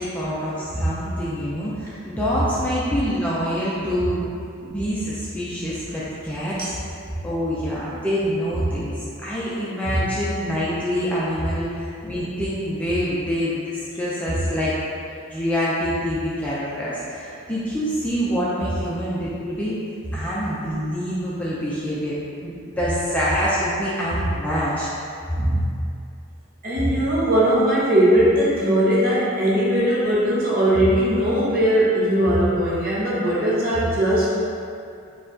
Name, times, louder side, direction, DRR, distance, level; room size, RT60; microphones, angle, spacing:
voice 1, 0.0-4.3 4.6-6.8 7.2-14.7 15.3-19.7 20.1-22.2 22.4-24.9, equal, 5° left, -9 dB, 0.4 m, -26 dB
voice 2, 25.4-25.8 26.6-34.4, right 1 dB, 45° right, -7 dB, 0.9 m, -19 dB
4.5 x 2.5 x 3.8 m, 2.4 s
head